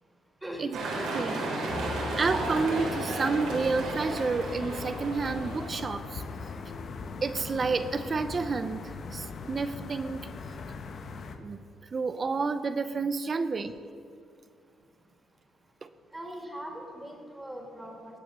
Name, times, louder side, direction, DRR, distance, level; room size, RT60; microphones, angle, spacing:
sound 1, 0.7-5.8, right 2 dB, 85° right, 3.8 m, -33 dB
voice 1, 1.1-1.5 2.2-6.2 7.2-10.3 11.4-11.6 11.9-13.8 15.8-15.9, right 4 dB, 40° right, 11 dB, 0.6 m, -30 dB
sound 2, 1.7-11.4, left 4 dB, 55° left, 1.2 m, -39 dB
voice 2, 16.1-18.2, right 1 dB, 10° right, 1 dB, 3.0 m, -41 dB
19.5 x 7.3 x 6.7 m, 2.4 s
cardioid pair, 90°, 0 cm